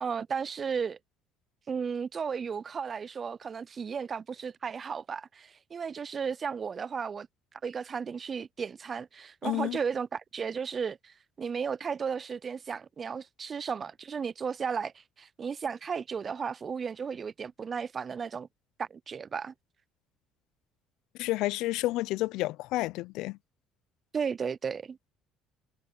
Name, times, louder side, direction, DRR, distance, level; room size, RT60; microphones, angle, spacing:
voice 1, 0.0-1.0 1.7-7.3 7.6-18.5 18.8-19.5 24.1-25.0, right 6 dB, 35° right, 0.3 m, -34 dB
voice 2, 9.4-9.8 21.2-23.4, left 18 dB, 75° left, 0.5 m, -30 dB
cardioid pair, 110°, 0 cm